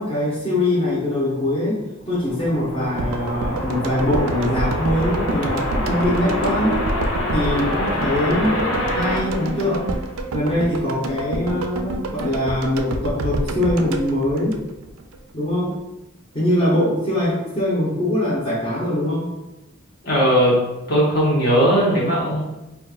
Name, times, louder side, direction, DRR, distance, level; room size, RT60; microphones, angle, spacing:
voice 1, 0.0-6.8 7.3-8.6 8.9-10.0 10.3-14.6 15.3-15.8 16.3-19.3, left 1 dB, 25° left, -10 dB, 0.8 m, -22 dB
sound 1, 2.0-10.3, left 1 dB, 75° left, 0.8 m, -26 dB
sound 2, 3.0-15.2 15.4-15.5, right 2 dB, 85° right, 0.3 m, -28 dB
voice 2, 20.0-20.5 20.9-22.4, equal, 50° left, -5 dB, 1.0 m, -17 dB
4.3 x 2.3 x 2.3 m, 0.97 s
head